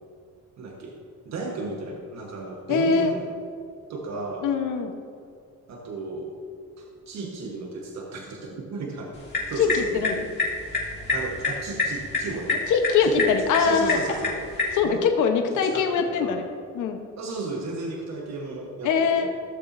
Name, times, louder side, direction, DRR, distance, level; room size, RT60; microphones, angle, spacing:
voice 1, 0.6-0.9 1.2-3.3 3.9-4.5 5.7-6.4 6.8-9.2 9.5-10.0 11.1-12.6 13.0-14.4 14.8-15.0 15.6-16.4 17.2-19.3, right 3 dB, 60° right, 0 dB, 1.4 m, -34 dB
voice 2, 2.7-3.1 4.4-4.9 9.6-10.2 12.7-14.0 14.7-16.4 16.7-17.0 18.8-19.3, left 5 dB, 80° left, 5 dB, 1.1 m, -22 dB
sound 1, 9.1-14.8, left 3 dB, 35° left, 2.5 m, -29 dB
16.5 x 7.0 x 2.7 m, 2.1 s
cardioid pair, 90°, 30 cm